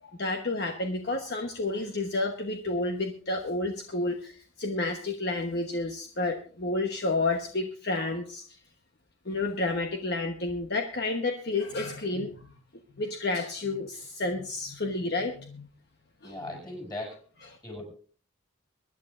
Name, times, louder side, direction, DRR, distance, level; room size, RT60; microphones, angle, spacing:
voice 1, 0.0-8.4 9.3-12.5 13.0-15.7 16.2-16.4, left 2 dB, 50° left, 3 dB, 1.1 m, -30 dB
voice 2, 16.2-17.2 17.6-17.8, left 1 dB, 20° left, 1 dB, 6.8 m, -38 dB
23.5 x 11.0 x 2.6 m, 0.42 s
head